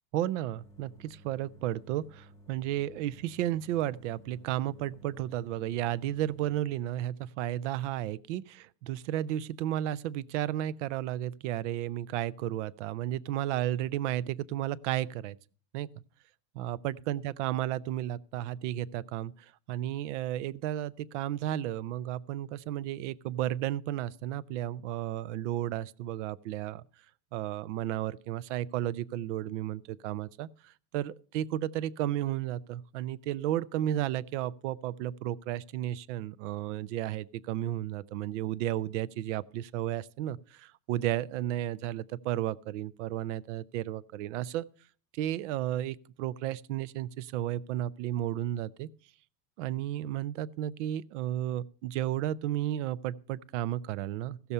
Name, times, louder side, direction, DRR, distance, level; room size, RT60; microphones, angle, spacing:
voice 1, 0.1-15.4 15.7-15.9 16.5-26.8 27.3-44.7 45.1-48.9 49.6-54.5, right 13 dB, 50° right, 0.5 m, -33 dB
sound 1, 0.5-6.6, equal, 5° left, 0.7 m, -56 dB
15.5 x 6.9 x 5.5 m
supercardioid pair, 165°, 46 cm